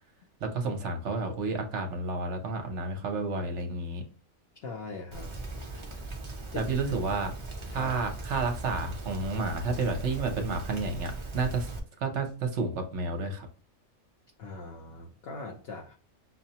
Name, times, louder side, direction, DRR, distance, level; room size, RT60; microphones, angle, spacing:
voice 1, 0.4-4.0 6.5-7.3 7.7-11.7 12.0-13.5, right 3 dB, 65° right, 0.9 m, -31 dB
voice 2, 4.6-5.3 6.5-6.7 7.7-7.9 14.4-16.0, left 3 dB, 65° left, 0.6 m, -40 dB
Rain, 5.1-11.8, right 2 dB, 40° right, 0.4 m, -39 dB
5.6 x 2.0 x 2.7 m
omnidirectional pair, 1.4 m